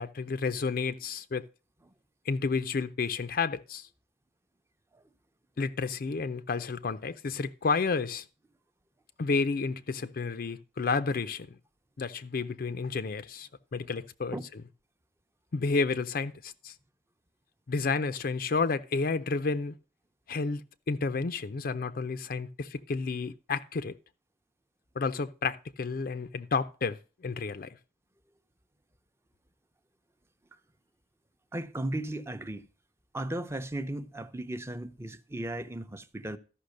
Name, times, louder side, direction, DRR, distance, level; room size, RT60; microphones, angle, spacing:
voice 1, 0.0-1.4 2.3-3.9 5.6-8.2 9.2-11.6 12.0-14.4 15.5-16.7 17.7-19.8 20.3-23.9 25.0-27.7, left 4 dB, 55° left, 0.5 m, -31 dB
voice 2, 31.5-32.7 33.1-36.4, right 1 dB, 15° right, 0.7 m, -36 dB
13.0 x 5.7 x 6.5 m
head